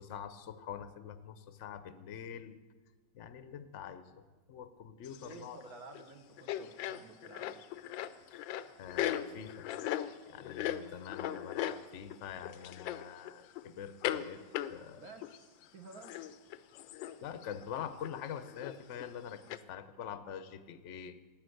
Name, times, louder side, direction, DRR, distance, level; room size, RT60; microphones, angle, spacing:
voice 1, 0.0-2.6 3.1-4.2 4.5-5.6 8.3-8.4 8.8-9.7 10.3-14.4 14.7-15.0 17.2-21.2, left 8 dB, 55° left, 11 dB, 0.9 m, -45 dB
sound 1, 5.0-5.6 5.9-6.1 6.4-12.2 12.4-13.6 14.0-14.3 14.5-15.4 15.6-15.7 15.9-17.2 17.4-17.6 18.0-19.1 19.5-19.6, left 12 dB, 80° left, 1.4 m, -38 dB
voice 2, 5.2-7.7 14.9-16.2, right 3 dB, 55° right, 6 dB, 1.5 m, -52 dB
15.0 x 9.4 x 7.9 m, 1.3 s
omnidirectional pair, 2.1 m